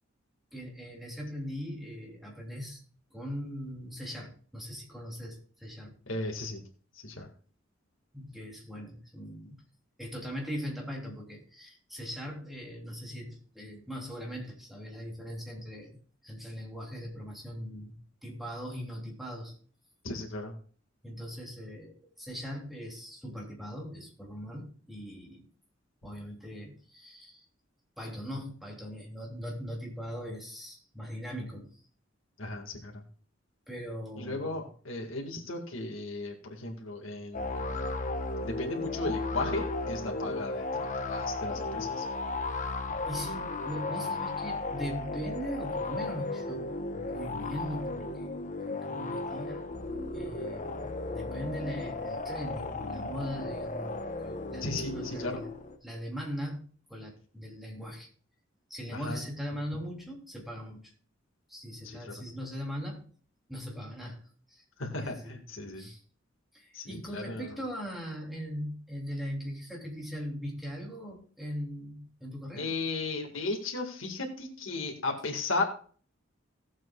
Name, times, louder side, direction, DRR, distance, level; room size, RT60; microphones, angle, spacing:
voice 1, 0.5-2.8 3.1-5.9 8.1-9.6 10.0-16.0 16.2-18.0 18.2-19.5 21.0-25.5 26.0-27.5 28.0-31.8 33.7-34.7 43.1-46.7 46.9-49.7 50.1-53.9 54.2-54.6 54.9-55.5 55.8-58.1 58.7-60.8 61.5-63.1 63.5-64.2 64.5-64.6 65.0-65.4 65.7-66.0 66.5-72.7, equal, ahead, -2 dB, 3.0 m, -40 dB
voice 2, 6.1-6.6 6.9-7.3 20.0-20.5 32.4-33.0 34.2-37.8 38.4-42.1 54.6-55.4 58.9-59.2 61.8-62.1 64.8-65.9 66.7-67.5 72.6-75.6, left 2 dB, 85° left, 1 dB, 1.9 m, -35 dB
sound 1, 37.3-55.8, left 2 dB, 40° left, 1.0 m, -35 dB
18.0 x 7.6 x 2.4 m, 0.44 s
head